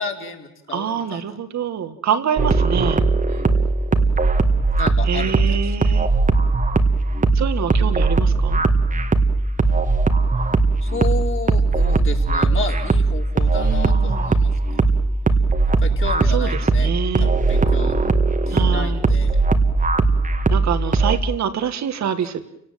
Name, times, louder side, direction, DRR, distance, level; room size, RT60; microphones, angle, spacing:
voice 1, 0.0-1.2 3.3-3.7 4.8-5.9 10.8-14.8 15.8-17.9 18.5-19.4, left 4 dB, 45° left, 2 dB, 4.4 m, -32 dB
voice 2, 0.7-3.1 5.0-6.1 7.3-8.6 13.6-14.3 16.3-17.3 18.5-19.0 20.5-22.5, right 8 dB, 65° right, 10 dB, 2.1 m, -25 dB
sound 1, 2.4-21.2, right 3 dB, 25° right, 1.8 m, -18 dB
29.5 x 18.0 x 7.8 m, 0.79 s
cardioid pair, 90°, 30 cm